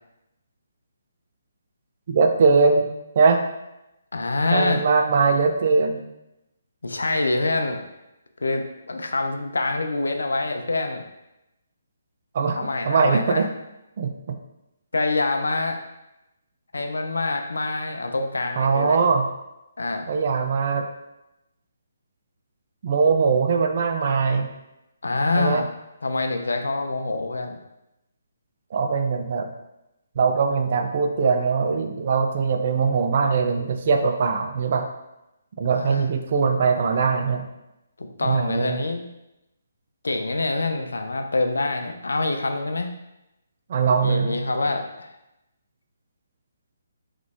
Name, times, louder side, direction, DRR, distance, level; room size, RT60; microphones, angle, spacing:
voice 1, 2.1-2.9 3.2-3.4 4.5-6.0 12.3-12.6 12.8-13.5 14.0-14.4 18.6-19.3 20.1-20.9 22.8-24.5 25.4-25.6 28.7-29.5 30.2-34.9 35.6-37.5 38.2-38.8 43.7-44.4, right 5 dB, 45° right, 5 dB, 0.5 m, -21 dB
voice 2, 4.1-4.8 6.8-7.8 8.4-11.0 12.6-13.4 14.9-15.8 16.7-19.0 19.8-20.1 25.0-25.7 26.0-27.6 35.7-36.0 38.0-39.0 40.0-42.9 44.0-45.1, left 2 dB, 75° left, 6 dB, 0.5 m, -25 dB
3.9 x 3.1 x 3.6 m, 0.91 s
figure-of-eight pair, 140°, 0 cm